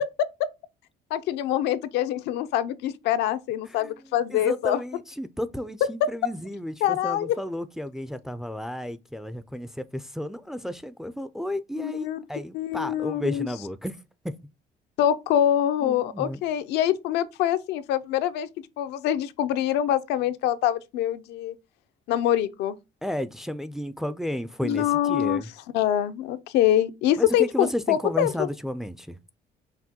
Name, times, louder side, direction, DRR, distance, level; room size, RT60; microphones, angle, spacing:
voice 1, 1.1-4.8 6.8-7.4 11.8-12.2 12.5-13.5 15.0-18.5 18.8-21.5 22.1-22.8 24.6-25.4 25.7-28.5, left 11 dB, 80° left, 0.5 m, -25 dB
voice 2, 4.3-14.0 14.2-14.4 15.8-16.4 23.0-25.5 27.2-29.2, left 1 dB, ahead, 0.3 m, -32 dB
5.8 x 2.2 x 2.8 m
cardioid pair, 110°, 17 cm